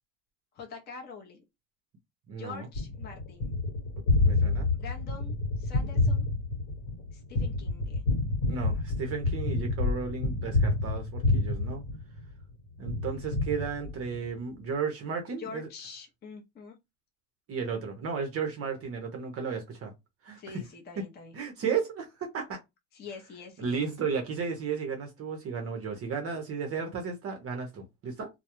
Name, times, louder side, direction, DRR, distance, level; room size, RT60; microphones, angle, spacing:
voice 1, 0.5-1.4 2.3-3.6 4.8-6.3 7.1-8.0 15.4-16.7 20.4-21.3 22.9-23.8, left 5 dB, 20° left, 0.5 m, -45 dB
voice 2, 2.3-2.7 4.2-4.7 8.5-11.8 12.8-15.7 17.5-19.9 20.2-20.6 21.0-21.1 21.3-22.6 23.6-28.3, right 5 dB, 30° right, 0.6 m, -34 dB
Gunshot gunfire, 2.7-12.4 12.8-14.3, left 3 dB, 55° left, 1.1 m, -28 dB
2.2 x 2.1 x 2.9 m
supercardioid pair, 125°, 47 cm